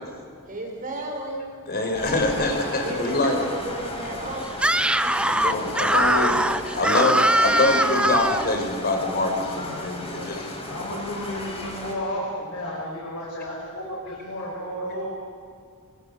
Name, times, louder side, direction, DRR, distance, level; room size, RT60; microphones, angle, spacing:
voice 1, 0.5-1.4 2.8-4.6 5.0-5.2 5.8-5.9 6.8-7.3, right 1 dB, 40° right, 1 dB, 4.6 m, -33 dB
voice 2, 1.7-3.5 5.3-6.4 6.7-10.4, left 2 dB, 45° left, 4 dB, 4.5 m, -24 dB
sound 1, 1.9-11.9, left 1 dB, 25° left, 5.2 m, -36 dB
Screaming, 4.5-8.5, right 1 dB, 5° right, 0.6 m, -21 dB
voice 3, 9.3-10.4 10.7-15.1, equal, 70° left, -4 dB, 6.1 m, -33 dB
28.0 x 26.5 x 6.9 m, 2.3 s
head